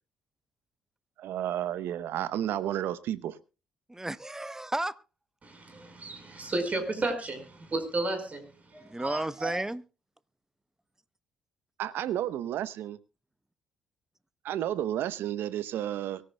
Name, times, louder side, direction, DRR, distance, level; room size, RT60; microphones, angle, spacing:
voice 1, 1.2-3.4 11.8-13.0 14.4-16.2, right 11 dB, 65° right, 0.8 m, -31 dB
voice 2, 3.9-5.0 8.8-9.8, right 1 dB, 10° right, 0.8 m, -33 dB
voice 3, 5.4-8.4 8.7-9.6, right 2 dB, 35° right, 4.8 m, -33 dB
24.0 x 14.0 x 2.3 m
hypercardioid pair, 45°, 4 cm